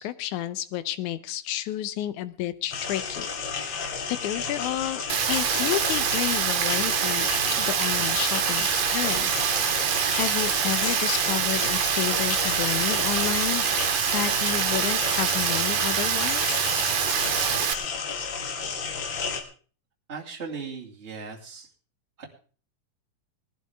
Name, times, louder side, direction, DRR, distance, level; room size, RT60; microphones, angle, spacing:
voice 1, 0.0-7.3 7.5-9.5 9.9-13.7 14.1-16.6, left 13 dB, 80° left, 13 dB, 2.2 m, -31 dB
sound 1, 2.7-19.4, left 5 dB, 50° left, 1.7 m, -32 dB
Rain, 5.1-17.7, right 10 dB, 75° right, 2.3 m, -25 dB
voice 2, 20.1-21.7 22.2-22.3, right 5 dB, 25° right, -1 dB, 2.3 m, -37 dB
19.5 x 11.5 x 3.5 m, 0.39 s
omnidirectional pair, 3.5 m